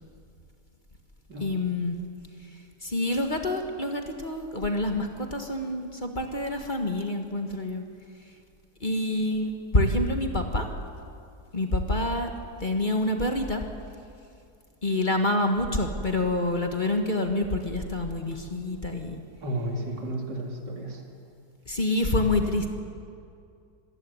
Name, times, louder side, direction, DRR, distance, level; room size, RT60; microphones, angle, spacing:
voice 1, 1.4-2.0 2.8-7.8 8.8-10.6 11.5-12.3 12.6-13.6 14.8-19.2 21.7-22.7, left 1 dB, 30° left, 4 dB, 1.7 m, -27 dB
voice 2, 19.4-21.0, right 1 dB, 85° right, 1 dB, 3.5 m, -33 dB
26.0 x 14.5 x 9.6 m, 2.4 s
omnidirectional pair, 1.8 m